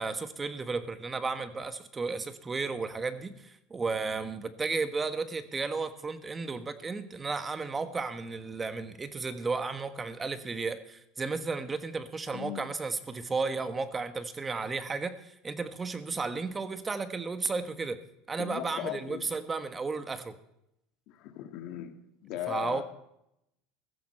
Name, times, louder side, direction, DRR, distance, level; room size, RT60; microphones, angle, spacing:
voice 1, 0.0-18.0 18.3-20.3 22.5-22.8, right 4 dB, 20° right, 10 dB, 1.3 m, -33 dB
voice 2, 12.3-12.7 18.4-19.2 21.1-22.8, left 12 dB, 60° left, 7 dB, 1.9 m, -38 dB
16.0 x 14.0 x 4.4 m, 0.80 s
supercardioid pair, 105°, 0 cm